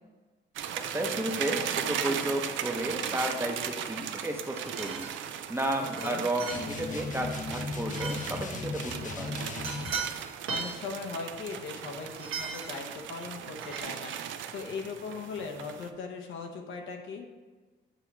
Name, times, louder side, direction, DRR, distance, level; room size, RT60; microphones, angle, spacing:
sound 1, 0.6-15.9, right 9 dB, 75° right, 0.5 m, -37 dB
voice 1, 0.9-5.1 5.5-9.4, right 1 dB, 10° right, 2 dB, 0.8 m, -33 dB
sound 2, 3.1-3.5 4.6-5.2 6.0-6.1 6.4-6.7 7.9-8.4 9.6-10.1 10.4-10.8 12.1-12.8 13.6-13.8, right 5 dB, 90° right, 1.2 m, -37 dB
voice 2, 5.8-6.3 10.5-14.1 14.5-17.3, left 4 dB, 75° left, 3 dB, 0.9 m, -39 dB
sound 3, 6.5-10.0, left 3 dB, 40° left, 0.7 m, -36 dB
8.4 x 3.0 x 4.5 m, 1.3 s
cardioid pair, 90°, 20 cm